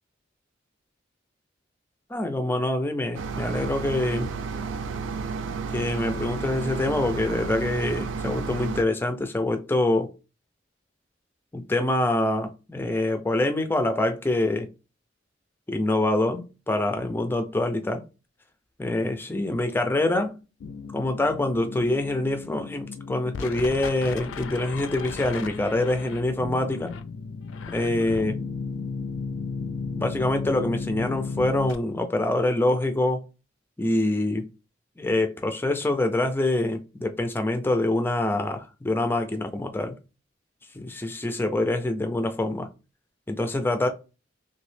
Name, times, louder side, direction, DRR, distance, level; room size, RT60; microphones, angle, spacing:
voice 1, 2.1-4.3 5.7-10.1 11.5-14.7 15.7-18.0 18.8-20.3 20.9-26.9 27.7-28.4 29.9-33.2 33.8-34.4 35.0-40.0 40.7-42.7 43.3-43.9, left 1 dB, 10° left, 0.3 m, -25 dB
sound 1, 3.1-8.8, right 5 dB, 85° right, 0.4 m, -32 dB
sound 2, 20.6-31.8, left 4 dB, 85° left, 0.4 m, -34 dB
3.0 x 2.6 x 3.2 m
head